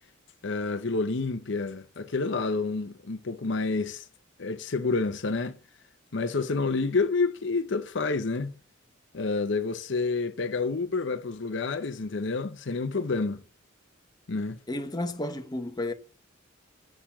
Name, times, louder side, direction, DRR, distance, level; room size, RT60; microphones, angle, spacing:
voice 1, 0.4-4.1 4.4-5.6 6.1-8.5 9.1-13.4 14.3-14.6, left 3 dB, 60° left, 0.7 m, -29 dB
voice 2, 14.7-15.9, left 1 dB, 20° left, 1.0 m, -32 dB
7.3 x 6.7 x 7.3 m
head